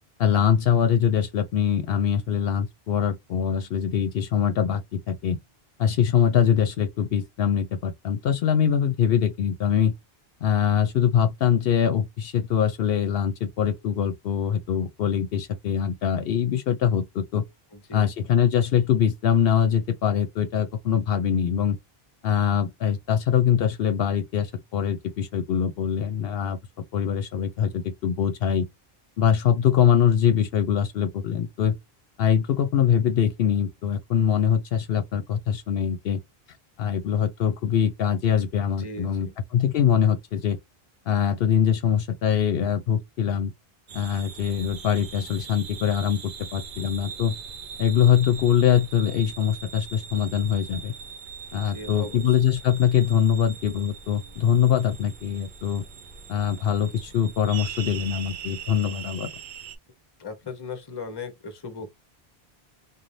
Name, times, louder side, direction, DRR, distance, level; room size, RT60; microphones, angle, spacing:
voice 1, 0.2-5.4 5.8-9.9 10.4-17.4 17.9-21.8 22.2-26.6 26.9-28.7 29.2-31.8 32.2-36.2 36.8-39.3 39.5-40.6 41.1-43.5 43.9-47.4 47.8-50.9 51.5-55.8 56.3-59.3, left 8 dB, 70° left, 0.7 m, -23 dB
voice 2, 17.7-18.1 38.8-39.3 51.5-52.2 60.2-61.9, left 4 dB, 25° left, 0.7 m, -38 dB
sound 1, 43.9-59.8, right 6 dB, 60° right, 0.6 m, -41 dB
2.6 x 2.1 x 3.0 m
omnidirectional pair, 1.0 m